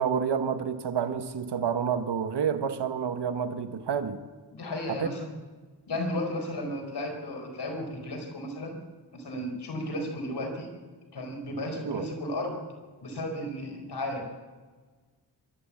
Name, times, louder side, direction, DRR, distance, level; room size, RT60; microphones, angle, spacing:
voice 1, 0.0-4.2 4.9-5.1 11.7-12.1, right 7 dB, 80° right, 1.2 m, -29 dB
voice 2, 4.5-5.3 5.9-8.8 9.1-10.7 11.1-12.6 13.0-14.3, left 1 dB, 80° left, 4.7 m, -34 dB
24.5 x 12.5 x 8.5 m
cardioid pair, 60°, 40 cm